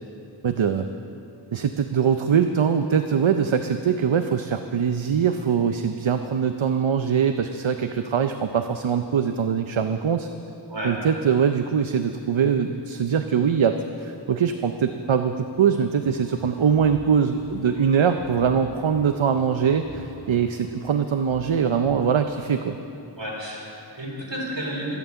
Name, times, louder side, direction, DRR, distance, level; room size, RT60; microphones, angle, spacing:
voice 1, 0.4-0.9 1.5-10.3 10.8-22.8, right 7 dB, 85° right, 7 dB, 0.6 m, -22 dB
sound 1, 16.0-22.1, equal, 40° right, 3.6 m, -47 dB
voice 2, 23.2-25.0, equal, 70° right, -3 dB, 3.9 m, -31 dB
14.0 x 12.5 x 6.9 m, 2.7 s
wide cardioid pair, 45°, 46 cm